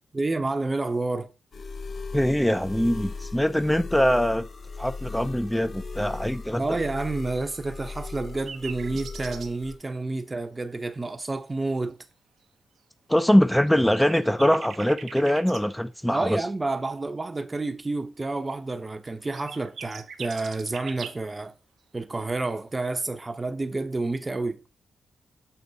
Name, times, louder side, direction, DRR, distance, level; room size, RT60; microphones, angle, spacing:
voice 1, 0.1-1.3 6.6-12.0 16.1-21.5 21.9-24.6, right 2 dB, 30° right, 0.7 m, -29 dB
sound 1, 1.5-9.7, left 4 dB, 60° left, 0.7 m, -38 dB
voice 2, 2.1-4.5 4.8-6.6 13.1-16.4, equal, 5° left, 0.5 m, -22 dB
sound 2, 8.0-9.5 13.7-13.8 13.9-15.6 19.1-21.2, right 6 dB, 75° right, 0.7 m, -41 dB
7.0 x 4.3 x 4.0 m
supercardioid pair, 40°, 0 cm